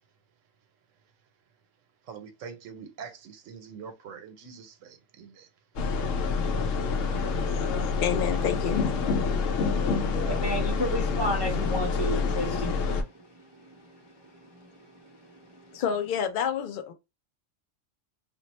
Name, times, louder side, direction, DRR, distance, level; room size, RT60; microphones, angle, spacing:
voice 1, 2.1-5.5, right 6 dB, 80° right, 1.0 m, -44 dB
sound 1, 5.8-13.0, left 4 dB, 80° left, 0.9 m, -27 dB
voice 2, 8.0-8.9 15.7-16.9, left 8 dB, 55° left, 0.6 m, -28 dB
voice 3, 10.2-12.8 14.5-14.6, equal, 35° right, 0.4 m, -31 dB
2.6 x 2.0 x 4.0 m
omnidirectional pair, 1.3 m